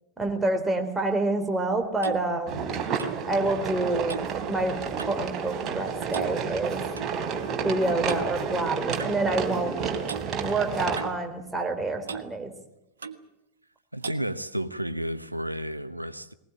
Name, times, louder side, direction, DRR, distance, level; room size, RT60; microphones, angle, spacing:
voice 1, 0.2-2.6 3.3-6.8 7.6-9.8 10.4-12.5, right 2 dB, 10° right, 3.6 m, -28 dB
Clock, 1.5-5.3 5.6-5.8 6.1-7.1 8.1-8.3 9.0-9.2 10.1-10.3 10.9-11.8 12.1-12.3 13.0-13.2 14.0-14.3, right 6 dB, 70° right, 1.4 m, -39 dB
sound 1, 2.5-11.1, right 6 dB, 30° right, 3.5 m, -31 dB
voice 2, 13.9-16.3, right 1 dB, 85° right, 1.1 m, -32 dB
20.5 x 19.5 x 8.8 m
figure-of-eight pair, 90°, 0 cm